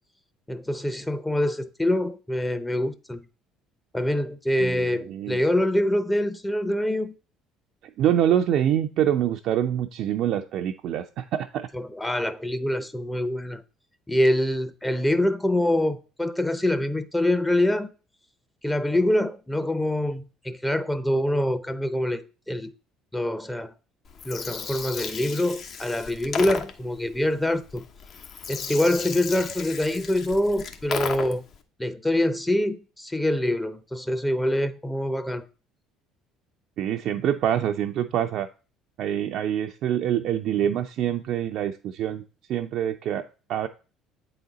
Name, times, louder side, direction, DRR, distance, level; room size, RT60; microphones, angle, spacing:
voice 1, 0.5-3.2 3.9-7.1 11.7-13.6 14.1-17.9 18.6-22.7 23.1-23.7 24.2-27.8 28.5-31.4 31.8-35.5, left 1 dB, 10° left, 0.7 m, -25 dB
voice 2, 4.6-5.4 8.0-11.7 36.8-38.5 39.0-42.2 42.5-43.7, right 10 dB, 60° right, 0.5 m, -25 dB
Gurgling, 24.1-31.6, left 6 dB, 55° left, 1.0 m, -35 dB
8.4 x 3.9 x 4.0 m
hypercardioid pair, 65°, 0 cm